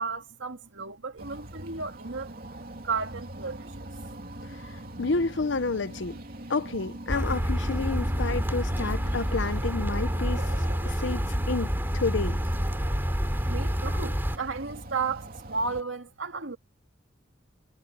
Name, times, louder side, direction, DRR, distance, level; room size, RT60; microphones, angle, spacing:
voice 1, 0.0-2.4 2.8-3.9 13.5-16.6, right 4 dB, 85° right, 2.5 m, -33 dB
sound 1, 1.2-15.8, right 1 dB, 50° right, 3.0 m, -41 dB
voice 2, 5.0-6.2 6.5-10.5 10.8-12.4, left 3 dB, 70° left, 0.8 m, -30 dB
sound 2, 7.1-14.4, equal, 10° right, 4.0 m, -28 dB
head